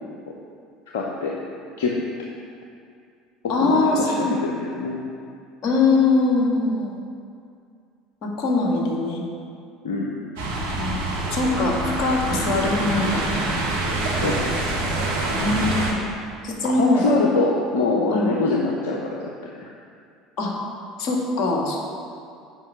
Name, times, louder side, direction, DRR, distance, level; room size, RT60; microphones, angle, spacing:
voice 1, 0.9-1.3 1.8-1.9 3.4-5.0 9.8-10.2 14.2-14.4 16.6-19.0 19.4-19.7, left 3 dB, 75° left, -2 dB, 0.8 m, -24 dB
voice 2, 3.5-4.4 5.6-7.0 8.2-9.2 10.7-13.3 15.3-16.0 16.4-17.2 18.1-18.3 20.4-20.6 21.0-21.8, left 3 dB, 55° left, -1 dB, 1.8 m, -22 dB
sound 1, 10.4-15.9, right 2 dB, 75° right, 1.5 m, -25 dB
7.7 x 5.4 x 7.1 m, 2.3 s
hypercardioid pair, 70°, 0 cm